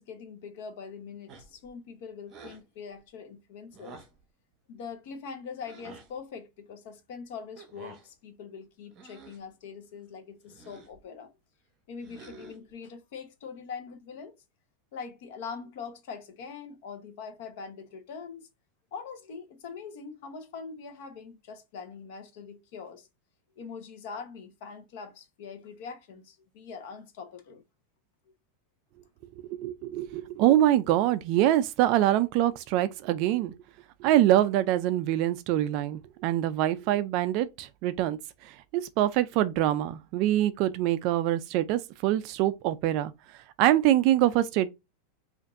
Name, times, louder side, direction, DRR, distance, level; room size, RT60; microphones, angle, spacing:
voice 1, 0.0-4.0 4.7-11.3 11.9-14.3 14.9-18.5 18.9-23.1 23.6-27.6, left 5 dB, 55° left, 0.9 m, -43 dB
sound 1, 1.3-1.7 2.3-2.7 3.7-4.2 5.7-6.1 7.6-8.1 8.9-9.5 10.5-11.0 12.0-12.7, right 3 dB, 25° right, 0.8 m, -49 dB
voice 2, 29.5-33.6 34.0-38.2 38.4-43.1 43.6-44.7, right 13 dB, 40° right, 0.3 m, -24 dB
5.2 x 2.5 x 2.5 m
supercardioid pair, 175°, 0 cm